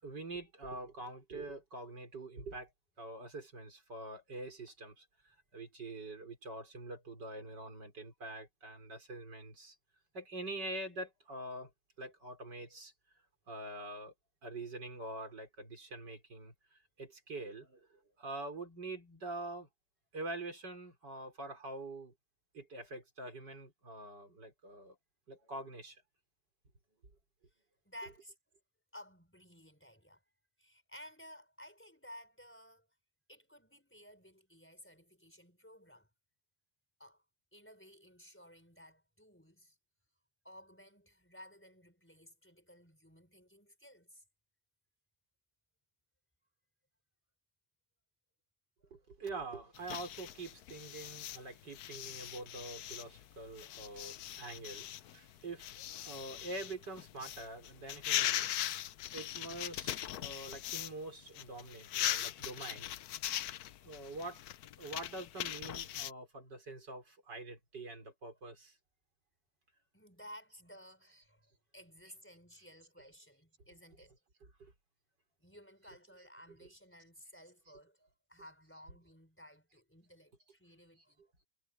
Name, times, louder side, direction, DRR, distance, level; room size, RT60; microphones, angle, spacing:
voice 1, 0.0-2.7 3.0-9.8 10.1-11.7 12.0-12.9 13.5-14.1 14.4-19.7 20.1-22.1 22.5-25.0 25.3-26.0 28.0-28.2 48.9-58.6 59.1-63.0 63.8-64.4 64.8-68.7 71.1-71.2 72.0-72.1 73.0-73.1 74.4-74.7 76.5-76.7, right 2 dB, 70° right, 5.5 m, -45 dB
voice 2, 27.8-28.3 28.9-30.2 30.6-32.9 33.3-36.1 37.0-37.2 37.5-39.8 40.4-44.2 48.8-49.1 63.7-63.9 69.9-74.2 75.4-81.2, equal, 5° left, 4.5 m, -56 dB
sound 1, 49.7-60.9 61.2-66.1, left 12 dB, 65° left, 1.1 m, -40 dB
omnidirectional pair, 1.9 m